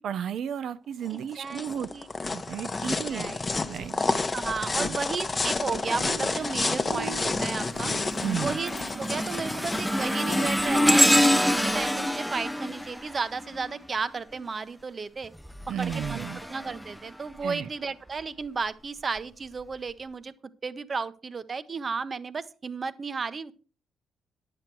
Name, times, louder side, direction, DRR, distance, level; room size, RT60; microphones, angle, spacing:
voice 1, 0.0-1.9 2.3-3.3 3.7-4.0 4.8-5.0 8.2-8.6 15.7-16.4 17.4-17.7, right 8 dB, 65° right, 0.6 m, -33 dB
sound 1, 1.1-11.9, left 3 dB, 25° left, 0.9 m, -31 dB
voice 2, 1.1-2.1 2.9-3.4 3.8-4.1 4.3-7.9 8.4-8.7 9.0-15.3 15.8-20.3 20.6-23.5, right 4 dB, 35° right, 0.8 m, -34 dB
sound 2, 5.4-12.0, right 5 dB, 90° right, 4.1 m, -40 dB
sound 3, 6.3-6.7 7.2-14.0 15.2-17.4 18.1-18.3 19.2-19.3, left 1 dB, ahead, 0.5 m, -27 dB
10.0 x 7.8 x 4.6 m
cardioid pair, 90°, 0 cm